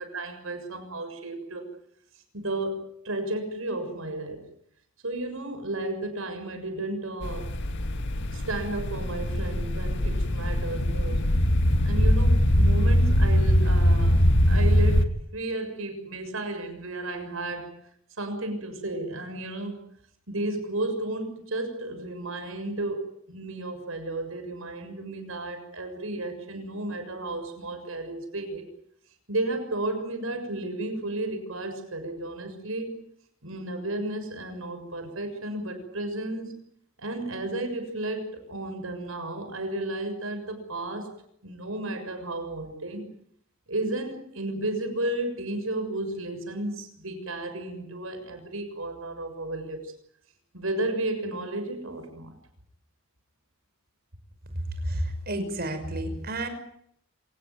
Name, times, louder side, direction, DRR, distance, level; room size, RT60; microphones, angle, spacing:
voice 1, 0.0-1.7 2.3-4.4 5.0-7.5 8.3-11.3 11.8-14.2 14.5-17.8 18.2-19.8 20.3-28.7 29.3-33.0 33.4-36.5 37.0-41.1 41.4-43.0 43.7-49.9 50.5-52.3, right 2 dB, 75° right, 7 dB, 6.8 m, -33 dB
sound 1, 7.2-15.1, equal, 60° left, 1.8 m, -22 dB
voice 2, 54.8-56.5, right 1 dB, 50° right, 8 dB, 5.8 m, -30 dB
27.0 x 18.0 x 9.4 m, 0.71 s
head